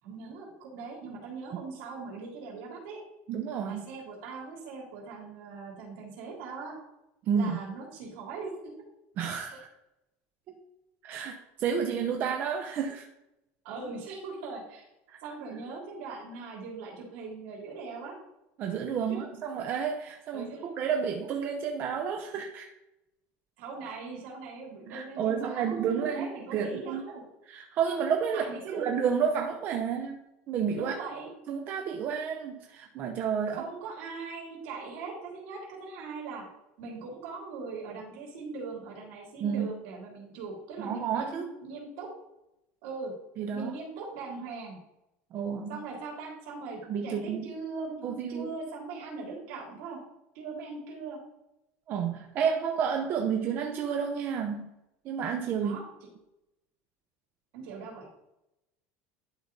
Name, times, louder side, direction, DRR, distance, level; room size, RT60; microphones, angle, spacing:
voice 1, 0.0-3.0 3.6-6.7 7.3-8.5 13.6-14.9 15.2-18.1 19.1-19.2 20.3-20.7 23.6-27.2 28.3-29.0 30.7-31.3 33.5-36.4 36.8-42.1 42.8-43.1 43.5-44.8 45.7-50.0 50.3-51.2 55.6-55.8 57.5-58.1, right 4 dB, 70° right, -3 dB, 3.1 m, -40 dB
voice 2, 3.3-3.8 7.3-7.6 9.2-9.7 11.0-13.1 15.1-15.2 18.6-20.5 20.8-22.7 24.9-27.0 27.5-28.5 28.7-30.2 30.5-30.9 31.5-33.6 39.4-39.7 40.8-41.5 43.4-43.7 45.3-45.8 46.9-47.4 48.0-48.5 51.9-54.7 55.0-55.8, right 7 dB, 35° right, 3 dB, 0.6 m, -30 dB
11.0 x 3.9 x 3.8 m, 0.89 s
cardioid pair, 180°, 6 cm